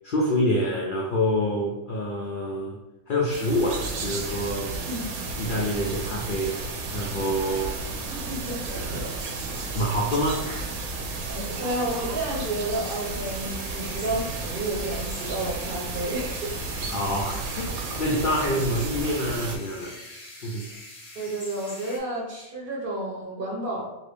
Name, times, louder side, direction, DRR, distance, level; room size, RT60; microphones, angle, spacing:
voice 1, 0.0-2.8 3.1-4.8 5.4-6.6 6.9-7.9 9.7-10.7 11.4-11.5 16.9-17.7 18.0-20.0 20.4-20.7, left 1 dB, 80° left, -2 dB, 0.4 m, -26 dB
sound 1, 3.3-19.6, right 3 dB, 90° right, 1.0 m, -33 dB
voice 2, 8.1-9.1 11.3-16.5 20.7-20.8 21.1-23.8, right 1 dB, 50° right, -3 dB, 0.8 m, -31 dB
sound 2, 12.8-22.0, left 2 dB, 40° left, 0.6 m, -45 dB
2.7 x 2.6 x 3.3 m, 0.98 s
omnidirectional pair, 1.5 m